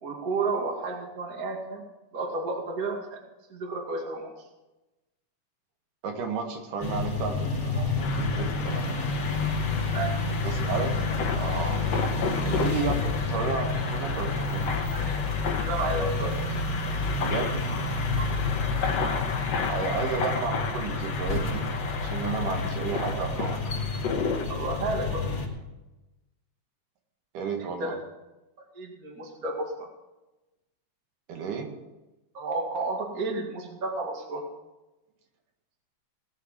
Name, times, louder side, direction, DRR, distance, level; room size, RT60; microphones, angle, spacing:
voice 1, 0.0-1.8 2.1-3.2 3.5-4.3 9.9-10.1 14.9-15.2 15.5-16.5 18.1-18.4 24.5-25.2 27.6-28.0 28.7-29.9 32.3-34.4, right 3 dB, 30° right, 1 dB, 2.3 m, -32 dB
voice 2, 6.0-9.1 10.4-11.0 11.3-11.8 12.5-12.9 13.3-14.7 17.2-17.6 19.7-21.6 22.0-23.6 27.3-27.9 31.3-31.7, right 5 dB, 80° right, 3 dB, 3.3 m, -32 dB
sound 1, 6.8-25.5, left 3 dB, 40° left, 2.9 m, -29 dB
sound 2, 8.0-24.4, left 5 dB, 60° left, 2.3 m, -34 dB
19.0 x 6.8 x 7.5 m, 1.0 s
omnidirectional pair, 3.6 m